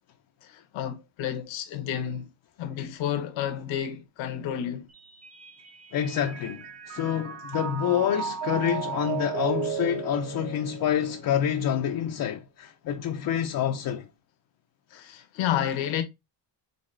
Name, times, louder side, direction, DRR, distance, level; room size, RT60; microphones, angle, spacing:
voice 1, 0.4-2.3 2.6-4.9 14.9-16.0, left 10 dB, 75° left, 1.1 m, -30 dB
Mallet percussion, 4.9-11.4, right 8 dB, 35° right, 0.9 m, -35 dB
voice 2, 5.9-14.1, left 9 dB, 50° left, 0.6 m, -27 dB
4.0 x 3.5 x 3.2 m
cardioid pair, 120°, 46 cm